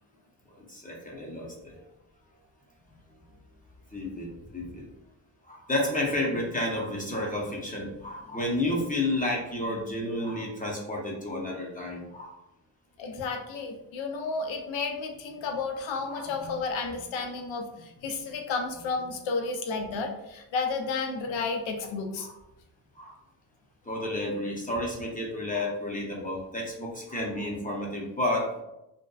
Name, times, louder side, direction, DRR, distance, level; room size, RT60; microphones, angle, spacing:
voice 1, 0.7-1.8 3.9-4.9 5.5-12.3 16.1-16.6 22.2-22.3 23.0-23.1 23.9-28.6, left 1 dB, 15° left, -3 dB, 0.7 m, -31 dB
voice 2, 13.0-22.3, left 4 dB, 65° left, 4 dB, 0.7 m, -32 dB
2.7 x 2.2 x 2.3 m, 0.92 s
supercardioid pair, 50°, 49 cm